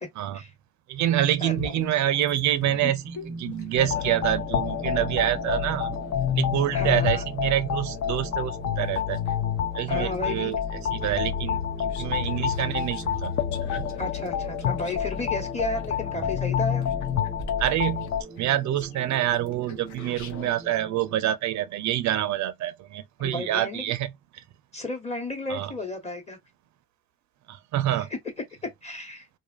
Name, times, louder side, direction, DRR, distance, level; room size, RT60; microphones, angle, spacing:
voice 1, 0.9-6.0 6.3-9.2 9.7-10.6 10.9-13.3 13.8-13.9 17.6-18.1 18.4-24.4 25.5-25.7 27.5-28.1, right 12 dB, 70° right, 0.4 m, -27 dB
voice 2, 1.4-1.8 4.9-5.4 6.7-7.2 9.9-10.5 14.0-16.8 23.2-23.9 24.7-26.4 27.9-28.2 28.8-29.3, left 2 dB, 20° left, 1.1 m, -33 dB
sound 1, 1.5-4.5 5.0-9.4 9.9-20.5, left 3 dB, 75° left, 0.8 m, -44 dB
sound 2, 1.8-21.2, right 2 dB, 20° right, 0.6 m, -42 dB
sound 3, 3.8-18.2, left 9 dB, 55° left, 0.4 m, -28 dB
2.6 x 2.3 x 2.3 m
cardioid pair, 90°, 30 cm